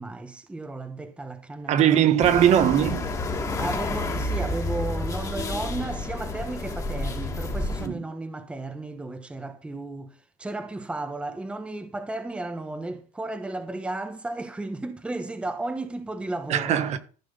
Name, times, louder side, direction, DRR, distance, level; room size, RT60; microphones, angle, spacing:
voice 1, 0.0-2.3 3.6-16.8, right 2 dB, 5° right, 1.3 m, -34 dB
voice 2, 1.7-3.1 7.8-8.0 16.5-17.0, right 10 dB, 40° right, 1.6 m, -20 dB
sound 1, 2.2-7.9, left 2 dB, 20° left, 2.4 m, -30 dB
14.5 x 6.2 x 6.8 m
cardioid pair, 160°, 18 cm